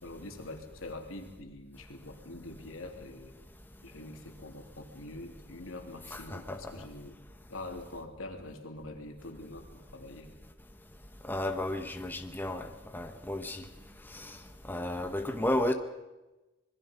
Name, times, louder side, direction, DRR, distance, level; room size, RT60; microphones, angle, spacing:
voice 1, 0.0-3.3 3.8-7.1 7.5-10.3, left 2 dB, 80° left, 3 dB, 3.2 m, -44 dB
voice 2, 6.1-6.6 11.3-13.6 14.1-14.4 14.7-15.7, left 1 dB, 10° left, 6 dB, 1.1 m, -33 dB
26.0 x 21.5 x 5.3 m, 1.1 s
head